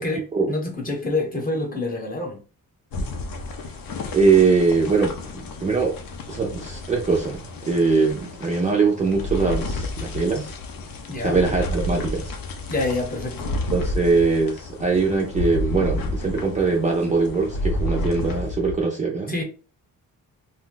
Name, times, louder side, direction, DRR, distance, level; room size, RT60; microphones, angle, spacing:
voice 1, 0.0-2.4 11.1-11.4 12.7-13.6 19.3-19.4, left 2 dB, 25° left, 0.9 m, -27 dB
sound 1, 2.9-18.8, left 2 dB, 75° left, 0.7 m, -31 dB
voice 2, 4.1-5.2 5.6-6.0 6.3-10.6 11.2-12.3 13.7-19.3, right 4 dB, 20° right, 0.4 m, -21 dB
2.6 x 2.2 x 3.7 m
wide cardioid pair, 155°, 35 cm